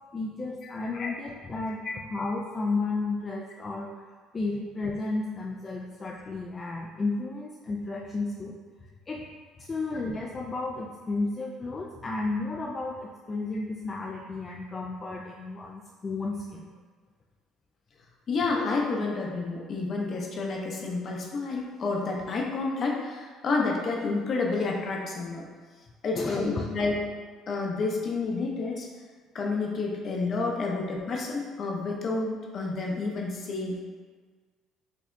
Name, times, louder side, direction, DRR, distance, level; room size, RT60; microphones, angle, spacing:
voice 1, 0.1-4.1 4.3-8.5 9.1-9.2 9.6-16.7 26.1-26.6, left 3 dB, 30° left, -2 dB, 0.3 m, -33 dB
voice 2, 18.3-25.5 26.0-26.9 27.5-28.9 29.3-33.8, left 3 dB, 50° left, -1 dB, 0.7 m, -29 dB
4.8 x 2.7 x 2.2 m, 1.5 s
supercardioid pair, 95°, 0 cm